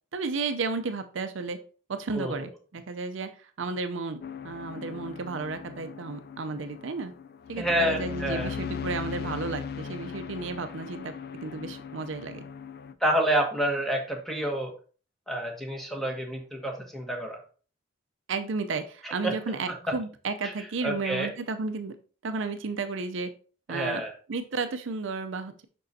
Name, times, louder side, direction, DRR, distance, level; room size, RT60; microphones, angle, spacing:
voice 1, 0.1-1.6 1.9-3.3 3.6-7.1 7.5-12.5 18.3-21.9 22.2-23.3 23.7-24.0 24.3-25.6, right 4 dB, 70° right, 9 dB, 0.5 m, -33 dB
voice 2, 2.1-2.4 7.6-8.5 13.0-14.7 15.3-17.4 19.0-19.4 19.7-19.9 20.4-21.3 23.7-24.1, right 1 dB, ahead, 2 dB, 1.2 m, -29 dB
sound 1, 4.2-12.9, left 6 dB, 55° left, 0.4 m, -38 dB
6.4 x 5.4 x 2.7 m, 0.38 s
head